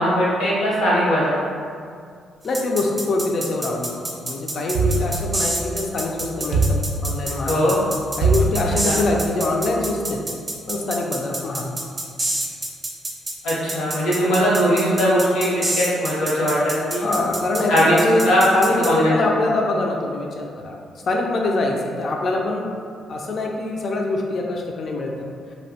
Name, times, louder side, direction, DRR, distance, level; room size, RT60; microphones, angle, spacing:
voice 1, 0.0-1.3 7.4-7.7 8.8-9.0 13.4-16.6 16.9-17.0 17.7-18.0 18.2-19.1, equal, 80° left, -8 dB, 0.8 m, -19 dB
voice 2, 2.4-6.8 7.0-10.2 10.7-11.8 17.0-20.8 21.1-22.7 23.1-25.1, left 2 dB, 55° left, 0 dB, 0.3 m, -24 dB
sound 1, 2.5-18.9, right 1 dB, 25° right, 0.5 m, -27 dB
sound 2, 4.7-5.9 6.5-7.6 8.2-9.3, right 3 dB, 85° right, 0.4 m, -22 dB
2.6 x 2.1 x 2.7 m, 2.2 s
cardioid pair, 90°, 0 cm